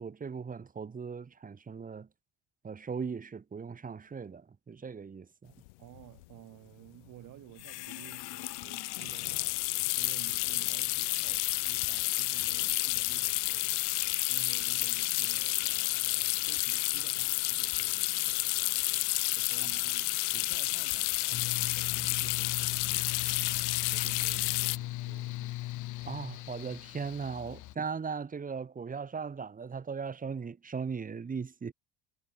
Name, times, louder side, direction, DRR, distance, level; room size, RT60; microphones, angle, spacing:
voice 1, 0.0-2.1 2.6-5.5 26.0-31.7, right 5 dB, 25° right, 1.4 m, -38 dB
sound 1, 5.7-5.8 5.9-6.2 7.6-24.8, left 25 dB, 85° left, 0.6 m, -31 dB
voice 2, 5.8-13.8 14.3-18.4 19.4-20.1 20.3-25.6, right 16 dB, 65° right, 4.1 m, -53 dB
Mechanical fan, 21.3-27.8, left 16 dB, 60° left, 1.4 m, -39 dB
hypercardioid pair, 75°, 34 cm